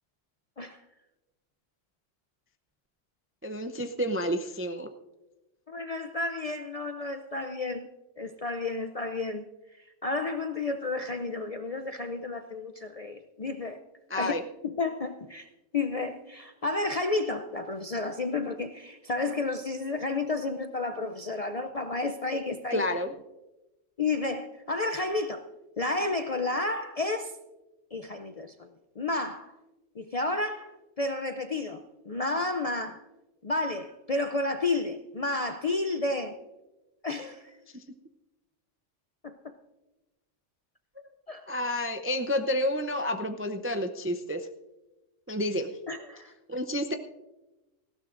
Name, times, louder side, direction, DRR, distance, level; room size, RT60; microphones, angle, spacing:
voice 1, 3.4-4.9 14.1-14.4 22.7-23.1 37.7-37.8 41.5-44.5 45.3-45.7 46.5-46.9, left 1 dB, 20° right, 6 dB, 0.3 m, -30 dB
voice 2, 5.7-7.9 8.2-9.5 10.0-13.8 14.1-14.3 14.6-22.9 24.0-25.4 25.8-27.3 27.9-28.7 29.0-29.5 30.0-30.7 31.0-33.0 33.4-36.4 37.0-37.5 39.2-39.5 41.3-41.5 45.9-46.3, left 3 dB, 45° left, 7 dB, 0.4 m, -31 dB
18.5 x 16.0 x 2.5 m, 1.0 s
omnidirectional pair, 1.3 m